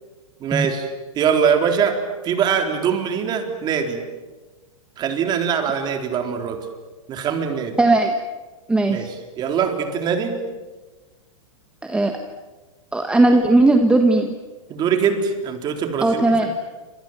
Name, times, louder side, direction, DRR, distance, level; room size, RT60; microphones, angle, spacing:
voice 1, 0.4-0.9 1.1-4.0 5.0-6.7 7.1-7.8 8.9-10.4 14.7-16.5, right 7 dB, 25° right, 5 dB, 3.9 m, -22 dB
voice 2, 7.8-8.1 8.7-9.1 11.8-12.2 12.9-14.3 16.0-16.5, right 2 dB, 5° right, 5 dB, 1.5 m, -17 dB
28.5 x 27.5 x 7.5 m, 1.3 s
hypercardioid pair, 145°, 18 cm